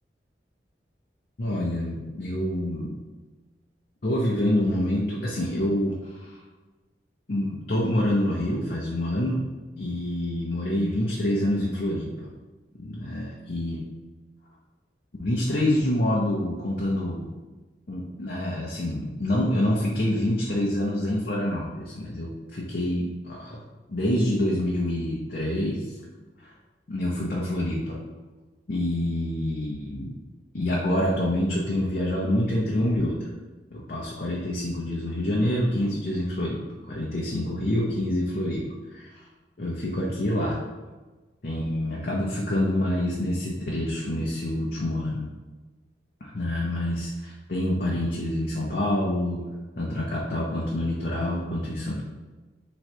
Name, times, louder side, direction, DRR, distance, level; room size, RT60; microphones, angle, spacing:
voice 1, 1.4-3.0 4.0-6.3 7.3-9.4 9.8-12.3 12.8-13.8 15.2-17.3 17.9-23.6 23.9-25.9 26.4-26.5 26.9-28.0 28.7-30.2 30.5-33.3 33.7-39.1 39.6-40.6 41.4-45.2 46.2-49.5 49.8-52.0, left 1 dB, 55° left, -4 dB, 0.7 m, -27 dB
3.8 x 3.1 x 4.5 m, 1.3 s
head